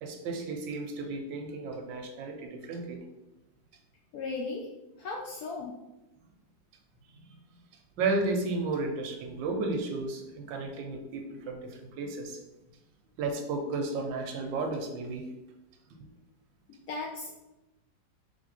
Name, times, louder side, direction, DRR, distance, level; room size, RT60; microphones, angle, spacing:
voice 1, 0.0-3.0 7.1-7.4 8.0-12.4 13.2-15.2, right 3 dB, 85° right, 4 dB, 1.4 m, -33 dB
voice 2, 4.1-4.7 5.0-5.8 16.7-17.3, left 3 dB, 70° left, -1 dB, 0.9 m, -36 dB
3.5 x 3.4 x 4.0 m, 0.97 s
omnidirectional pair, 2.0 m